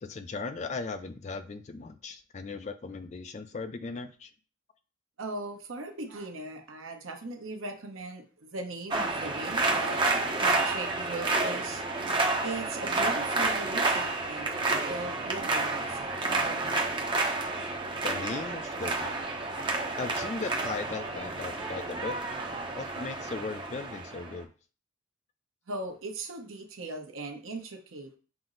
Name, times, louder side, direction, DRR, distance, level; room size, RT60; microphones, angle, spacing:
voice 1, 0.0-4.3 18.0-19.2 19.6-22.1 22.7-24.5, left 4 dB, 35° left, 10 dB, 0.3 m, -37 dB
voice 2, 5.2-11.8 12.4-17.0 25.7-28.1, right 2 dB, 80° right, 4 dB, 0.9 m, -39 dB
sound 1, 8.9-24.4, right 3 dB, 25° right, 0.5 m, -30 dB
5.9 x 2.0 x 3.7 m, 0.37 s
head